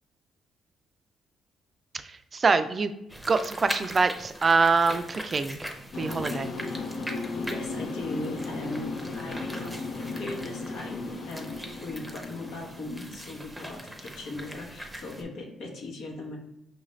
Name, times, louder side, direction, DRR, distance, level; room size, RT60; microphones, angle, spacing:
voice 1, 2.0-2.9 3.3-5.7 6.0-6.5, right 4 dB, 35° right, 10 dB, 0.3 m, -24 dB
sound 1, 3.1-15.2, equal, 5° right, 0.7 m, -41 dB
sound 2, 5.9-13.1, left 3 dB, 65° left, 0.5 m, -36 dB
voice 2, 7.4-16.4, left 2 dB, 85° left, 0 dB, 1.0 m, -39 dB
5.3 x 2.4 x 3.1 m, 0.85 s
cardioid pair, 90°, 0 cm